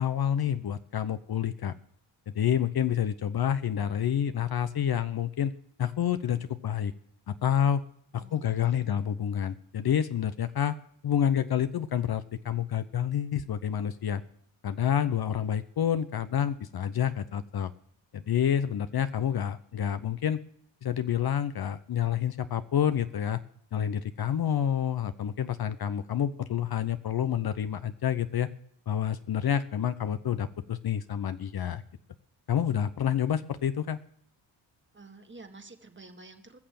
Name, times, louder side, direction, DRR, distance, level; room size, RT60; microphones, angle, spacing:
voice 1, 0.0-1.7 2.3-5.5 5.8-6.9 7.3-7.8 8.1-10.8 11.0-14.2 14.6-17.7 18.1-20.4 20.8-23.4 23.7-28.5 28.9-31.8 32.5-34.0, left 9 dB, 50° left, 11 dB, 0.8 m, -28 dB
voice 2, 8.1-8.8 34.9-36.6, right 3 dB, 20° right, 6 dB, 1.8 m, -50 dB
19.0 x 6.7 x 7.6 m, 0.66 s
cardioid pair, 70°, 50 cm